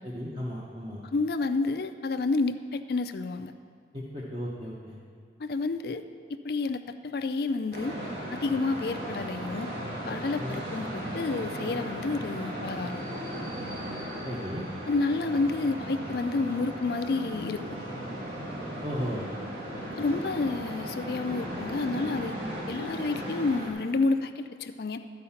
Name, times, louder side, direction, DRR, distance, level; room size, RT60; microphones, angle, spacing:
voice 1, 0.0-1.0 3.9-5.0 10.4-10.6 14.2-14.7 18.8-19.3, equal, 30° right, -6 dB, 0.9 m, -35 dB
voice 2, 1.1-3.5 5.4-6.0 6.4-8.0 8.3-9.7 10.1-13.0 14.9-17.6 20.0-22.4 22.7-25.0, left 3 dB, 55° left, 9 dB, 0.4 m, -29 dB
sound 1, 7.7-23.7, right 1 dB, 60° right, 1.5 m, -36 dB
12.0 x 4.8 x 5.7 m, 2.1 s
head